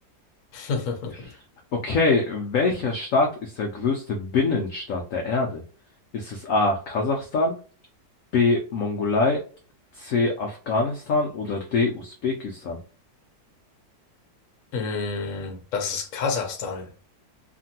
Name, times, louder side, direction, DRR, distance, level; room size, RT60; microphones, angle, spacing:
voice 1, 0.5-1.1 14.7-16.9, left 4 dB, 60° left, 0.9 m, -29 dB
voice 2, 1.7-5.6 6.1-7.6 8.3-9.4 10.0-12.8, left 3 dB, 85° left, 0.7 m, -24 dB
2.9 x 2.5 x 2.7 m
omnidirectional pair, 2.0 m